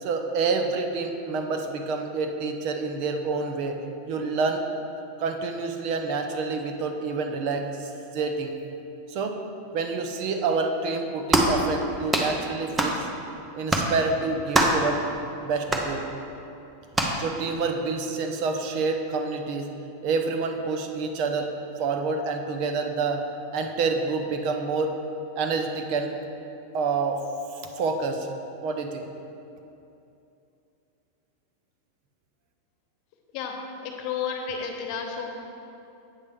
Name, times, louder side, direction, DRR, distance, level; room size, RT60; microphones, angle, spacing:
voice 1, 0.0-3.8 4.1-4.7 5.2-8.5 9.1-9.4 9.7-13.1 13.5-15.0 15.4-16.0 17.2-19.7 20.0-21.5 21.8-23.2 23.5-25.0 25.4-26.1 26.7-27.2 27.8-28.3 28.6-29.1, right 4 dB, 50° right, 5 dB, 0.8 m, -28 dB
sound 1, 11.3-11.6 12.1-12.3 12.8-13.0 13.7-13.9 14.5-14.9 15.7-15.9 16.9-17.2, right 2 dB, 15° right, 0.7 m, -22 dB
voice 2, 33.8-35.3, left 6 dB, 50° left, 3 dB, 1.0 m, -31 dB
8.3 x 6.5 x 3.7 m, 2.8 s
supercardioid pair, 135°, 0 cm